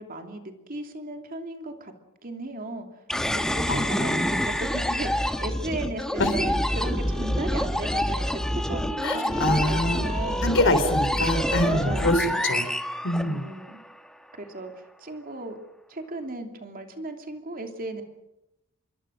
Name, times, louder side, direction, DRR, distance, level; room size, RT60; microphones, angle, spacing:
voice 1, 0.0-1.9 2.2-2.9 3.2-8.4 8.7-10.5 11.6-12.6 13.2-13.8 14.4-15.6 15.9-18.0, right 2 dB, 40° right, 4 dB, 2.9 m, -36 dB
sound 1, 3.1-13.7, equal, 5° left, 1.3 m, -27 dB
voice 2, 3.7-4.2 6.2-6.3 9.0-10.0 10.4-12.7 13.0-13.4, left 1 dB, 60° left, 10 dB, 3.7 m, -25 dB
26.5 x 22.5 x 6.5 m, 0.91 s
head